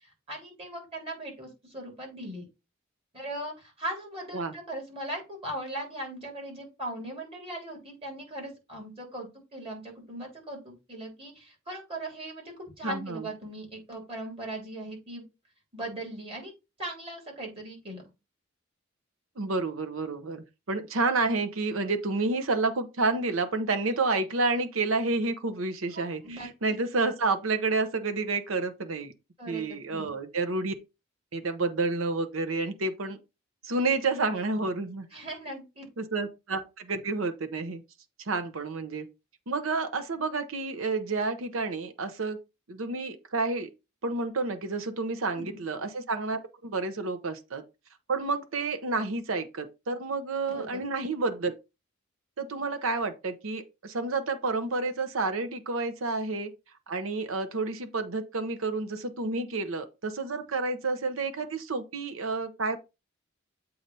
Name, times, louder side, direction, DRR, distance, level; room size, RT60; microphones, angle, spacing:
voice 1, 0.3-2.4 3.1-15.3 15.7-16.5 16.8-18.0 25.9-26.8 29.4-30.1 35.1-35.9 45.3-45.6 50.5-50.8, right 1 dB, 30° right, 3.3 m, -39 dB
voice 2, 12.8-13.3 19.4-29.1 29.5-30.7 31.3-33.2 33.6-35.1 36.0-37.8 38.3-39.1 39.5-42.4 42.7-43.7 44.0-47.6 48.1-51.5 52.4-56.5 56.9-62.8, right 3 dB, 85° right, 0.8 m, -30 dB
7.8 x 2.9 x 5.3 m
head